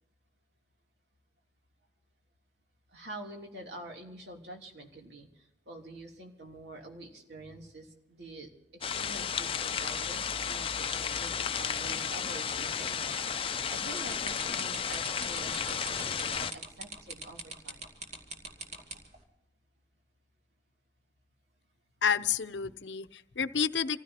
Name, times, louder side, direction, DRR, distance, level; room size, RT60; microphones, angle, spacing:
voice 1, 2.9-17.8, right 1 dB, 70° right, 1 dB, 3.1 m, -47 dB
sound 1, 8.8-16.5, left 7 dB, 30° left, 0.6 m, -33 dB
sound 2, 14.0-19.2, right 2 dB, 40° right, 2.7 m, -42 dB
voice 2, 22.0-24.0, left 7 dB, 85° left, 12 dB, 0.7 m, -30 dB
27.0 x 15.5 x 2.9 m, 0.89 s
head